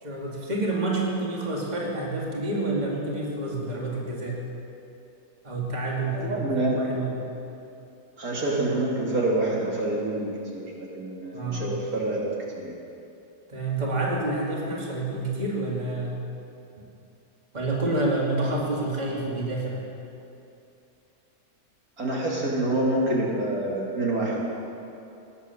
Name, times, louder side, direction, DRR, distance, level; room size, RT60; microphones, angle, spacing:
voice 1, 0.0-4.4 5.4-7.3 11.3-11.7 13.5-16.2 17.5-19.8, right 2 dB, 25° right, -3 dB, 2.3 m, -28 dB
voice 2, 6.2-6.8 8.2-12.3 12.6-12.7 22.0-24.6, right 2 dB, 65° right, -4 dB, 3.0 m, -27 dB
17.5 x 10.0 x 7.1 m, 2.8 s
omnidirectional pair, 1.7 m